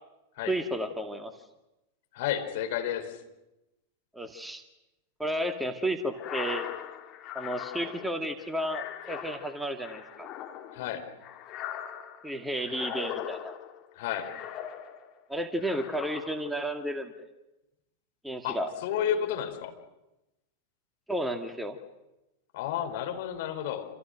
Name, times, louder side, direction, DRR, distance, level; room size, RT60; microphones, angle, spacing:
voice 1, 0.5-1.3 4.1-4.6 5.2-6.7 7.3-10.3 12.2-13.6 15.3-17.3 18.2-18.7 21.1-21.8, right 1 dB, 5° right, 7 dB, 2.2 m, -32 dB
voice 2, 2.1-3.2 10.7-11.0 13.9-14.3 18.4-19.7 22.5-23.9, left 10 dB, 50° left, 5 dB, 4.5 m, -31 dB
sound 1, 6.1-15.2 15.6-16.6, left 10 dB, 35° left, 2.8 m, -40 dB
28.5 x 28.5 x 6.6 m, 0.97 s
figure-of-eight pair, 90°, 0 cm